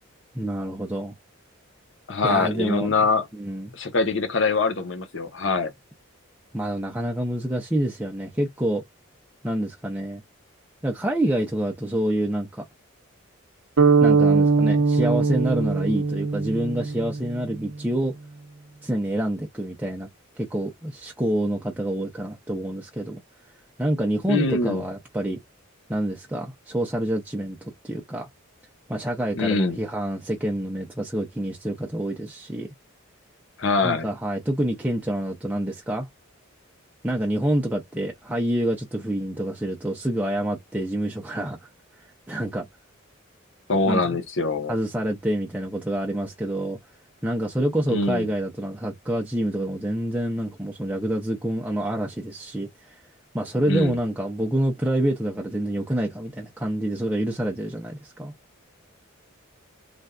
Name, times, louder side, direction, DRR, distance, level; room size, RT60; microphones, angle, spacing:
voice 1, 0.3-1.1 2.2-3.0 3.3-3.7 6.5-8.8 9.4-10.2 10.8-12.6 14.0-18.1 18.8-20.1 20.4-23.2 23.8-25.4 25.9-28.3 28.9-32.7 33.8-36.1 37.0-41.7 42.3-42.7 43.9-44.2 44.7-46.8 47.2-53.0 53.3-58.3, right 1 dB, 10° right, 0.5 m, -27 dB
voice 2, 2.1-3.2 3.8-5.7 24.3-24.8 29.4-29.8 33.6-34.1 43.7-44.8 47.9-48.3 53.7-54.0, left 3 dB, 60° left, 0.8 m, -23 dB
sound 1, 13.8-17.7, right 4 dB, 85° right, 0.7 m, -21 dB
3.3 x 2.5 x 2.2 m
head